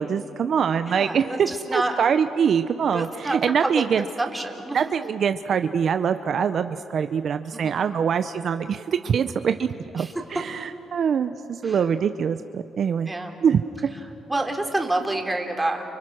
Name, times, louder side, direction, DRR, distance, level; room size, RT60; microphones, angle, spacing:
voice 1, 0.0-4.0 4.7-9.7 9.9-13.1 13.4-13.6, right 7 dB, 55° right, 9 dB, 0.7 m, -24 dB
voice 2, 0.9-2.0 2.9-4.8 7.5-7.8 10.0-10.1 11.6-11.8 13.1-13.3 14.3-15.8, right 2 dB, 15° right, 3 dB, 3.7 m, -28 dB
30.0 x 29.5 x 6.4 m, 2.8 s
cardioid pair, 90°, 0 cm